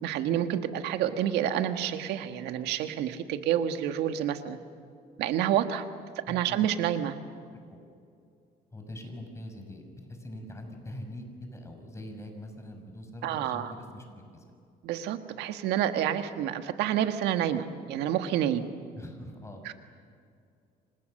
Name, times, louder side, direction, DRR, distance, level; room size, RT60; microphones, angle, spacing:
voice 1, 0.0-4.6 5.2-5.8 6.3-7.1 13.2-13.7 14.8-18.7 19.6-19.7, right 10 dB, 85° right, 8 dB, 1.7 m, -28 dB
voice 2, 6.3-6.7 7.7-7.8 8.7-14.4 19.0-19.7, left 1 dB, 15° left, 4 dB, 5.8 m, -43 dB
29.5 x 25.5 x 6.6 m, 2.4 s
cardioid pair, 110°, 17 cm